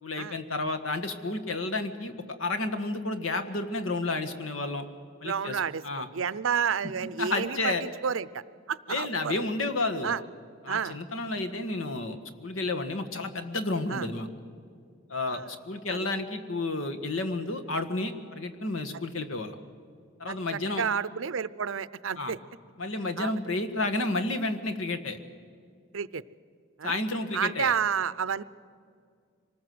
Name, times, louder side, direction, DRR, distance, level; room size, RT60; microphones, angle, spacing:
voice 1, 0.0-2.1 2.4-4.8 5.2-6.1 7.0-7.8 8.9-10.1 10.6-14.3 15.1-19.5 20.2-20.8 22.2-22.3 22.8-25.2 26.8-27.7, left 2 dB, 90° left, 7 dB, 1.7 m, -31 dB
voice 2, 5.2-5.8 6.1-8.4 8.7-9.4 10.0-10.2 10.7-11.0 13.9-14.1 15.3-15.5 15.9-16.1 20.3-20.4 20.8-22.4 23.2-23.3 25.9-26.2 26.8-27.0 27.3-28.4, right 7 dB, 80° right, 18 dB, 0.6 m, -30 dB
25.5 x 19.5 x 7.8 m, 2.3 s
head